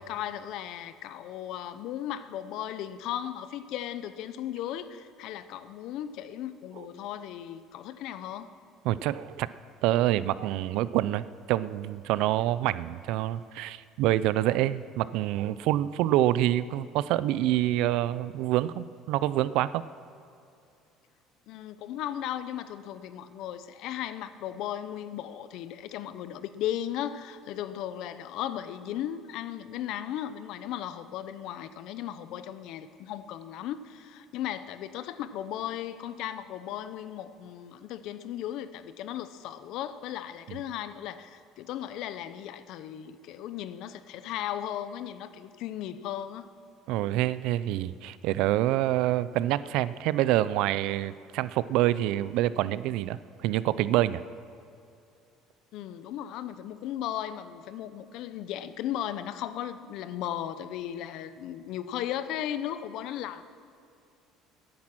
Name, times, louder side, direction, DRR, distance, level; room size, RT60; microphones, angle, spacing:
voice 1, 0.0-8.5 21.5-46.5 55.7-63.4, left 11 dB, 60° left, 12 dB, 0.7 m, -36 dB
voice 2, 8.8-9.5 9.8-19.8 46.9-54.2, right 14 dB, 70° right, 16 dB, 0.4 m, -26 dB
16.0 x 10.5 x 6.1 m, 2.5 s
cardioid pair, 150°, 0 cm